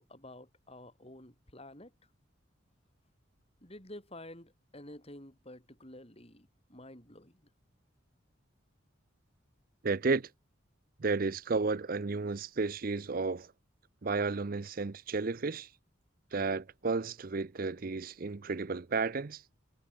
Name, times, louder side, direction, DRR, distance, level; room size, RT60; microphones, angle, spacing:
voice 1, 0.0-1.9 3.6-7.5, left 1 dB, 30° left, 5.6 m, -50 dB
voice 2, 9.8-10.3 11.0-13.5 14.0-15.7 16.3-19.4, right 4 dB, 45° right, 0.6 m, -32 dB
head